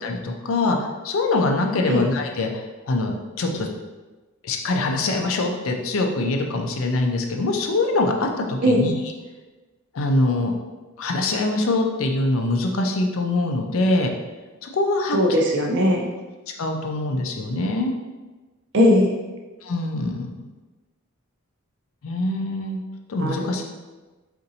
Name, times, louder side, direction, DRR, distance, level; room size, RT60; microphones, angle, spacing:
voice 1, 0.0-0.8 1.0-3.7 4.4-8.9 9.9-10.5 11.0-14.1 14.6-15.2 16.6-17.9 19.6-20.3 22.0-22.8 23.1-23.6, left 2 dB, 65° left, 3 dB, 0.4 m, -23 dB
voice 2, 15.1-16.1 18.7-19.1 23.2-23.6, equal, 55° right, 1 dB, 0.6 m, -19 dB
3.9 x 2.5 x 2.7 m, 1.2 s
head